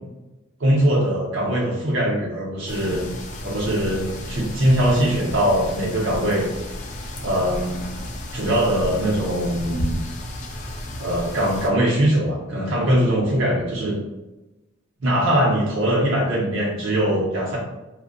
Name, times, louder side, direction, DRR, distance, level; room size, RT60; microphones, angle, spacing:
voice 1, 0.6-3.1 3.4-6.5 7.2-7.8 8.3-10.0 11.0-14.0 15.0-17.6, right 1 dB, 70° right, -4 dB, 0.6 m, -21 dB
sound 1, 2.7-11.7, left 1 dB, 40° left, 0.3 m, -33 dB
2.5 x 2.1 x 2.4 m, 1.0 s
head